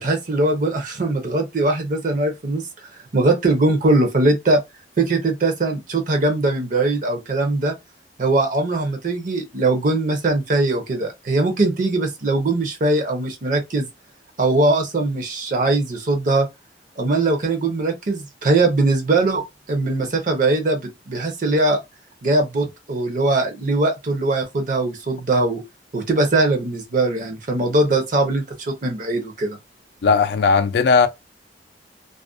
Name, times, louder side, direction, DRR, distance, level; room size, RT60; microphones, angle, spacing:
voice 1, 0.0-2.6 3.1-4.6 5.0-7.7 8.2-13.9 14.4-16.5 17.0-21.8 22.2-25.6 25.9-29.6, right 2 dB, 45° right, 0.6 m, -21 dB
voice 2, 30.0-31.1, left 5 dB, 65° left, 0.3 m, -16 dB
2.4 x 2.1 x 2.4 m
head